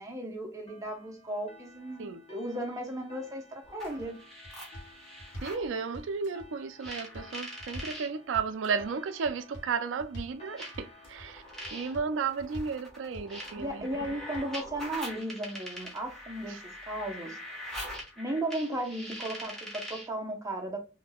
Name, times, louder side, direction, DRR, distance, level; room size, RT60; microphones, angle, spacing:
voice 1, 0.0-4.2 13.6-17.6 18.2-20.8, right 1 dB, 15° right, 0.8 m, -35 dB
sound 1, 0.7-13.8, left 1 dB, 30° left, 0.8 m, -56 dB
sound 2, 3.6-4.1 4.4-5.6 5.9-6.5 6.8-8.0 8.3-8.9 9.2-9.7 10.0-10.4 10.7-11.3 11.6-12.1 12.4-12.8 13.1-13.7 14.0-14.6, equal, 70° left, 1.3 m, -45 dB
sound 3, 3.6-5.7 6.8-8.1 9.2-9.3 10.6-20.2, equal, 5° left, 1.0 m, -43 dB
voice 2, 5.4-11.4 11.7-14.1 16.5-16.6, right 5 dB, 75° right, 0.4 m, -33 dB
3.5 x 2.7 x 2.2 m
head